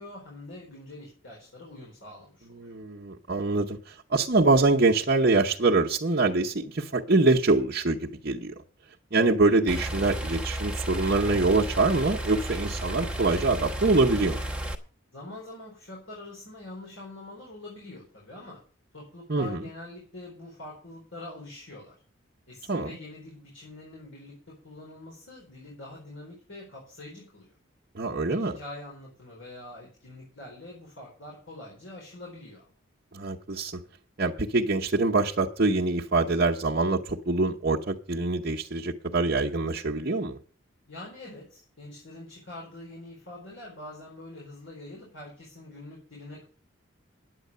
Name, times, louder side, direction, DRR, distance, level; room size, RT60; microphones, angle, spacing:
voice 1, 0.0-2.7 15.1-18.6 18.9-22.0 22.5-27.6 28.1-32.7 40.9-46.4, left 2 dB, 70° left, 4.2 m, -44 dB
voice 2, 2.6-8.5 9.1-14.4 19.3-19.6 22.7-22.9 27.9-28.6 33.1-33.8 34.2-40.4, right 3 dB, 50° right, 0.9 m, -24 dB
sound 1, 9.7-14.7, right 1 dB, 5° right, 1.0 m, -33 dB
9.9 x 8.3 x 6.7 m
head